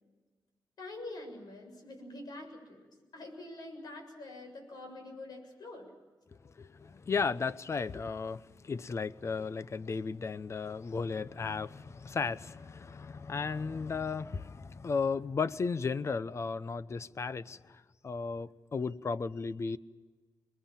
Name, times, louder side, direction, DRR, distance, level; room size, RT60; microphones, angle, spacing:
voice 1, 0.8-5.9, left 2 dB, 75° left, 4 dB, 7.2 m, -46 dB
voice 2, 6.4-19.8, left 5 dB, 40° left, 15 dB, 0.8 m, -35 dB
28.0 x 21.5 x 7.4 m, 1.3 s
wide cardioid pair, 125°, 7 cm